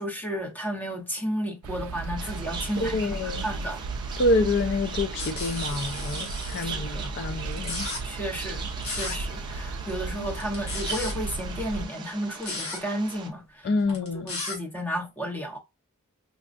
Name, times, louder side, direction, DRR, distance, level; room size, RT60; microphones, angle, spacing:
voice 1, 0.0-3.8 6.6-7.0 8.0-14.0 14.2-15.6, equal, 10° left, 0.9 m, -33 dB
sound 1, 1.6-11.9, right 4 dB, 70° right, 0.3 m, -35 dB
sound 2, 2.2-13.3, right 5 dB, 20° right, 0.6 m, -40 dB
voice 2, 2.8-3.5 4.2-7.9 13.6-14.3, left 2 dB, 50° left, 0.4 m, -27 dB
sound 3, 5.2-6.6 7.5-8.0 8.8-9.2 10.4-11.1 12.3-12.8 13.9-14.6, left 3 dB, 80° left, 2.0 m, -34 dB
5.1 x 2.3 x 2.5 m
head